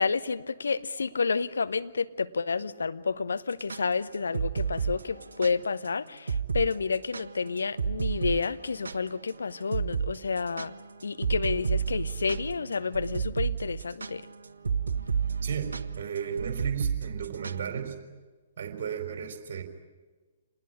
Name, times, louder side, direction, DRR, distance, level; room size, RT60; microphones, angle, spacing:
voice 1, 0.0-10.7 11.0-14.2, left 5 dB, 65° left, 1.0 m, -30 dB
sound 1, 3.5-5.5 5.8-5.9 6.3-6.7 6.9-9.3 9.7-10.1 10.4-17.7, right 6 dB, 70° right, 1.0 m, -31 dB
voice 2, 15.4-18.0 18.6-19.6, right 7 dB, 50° right, 4.3 m, -34 dB
27.0 x 20.0 x 10.0 m
figure-of-eight pair, 120°, 0 cm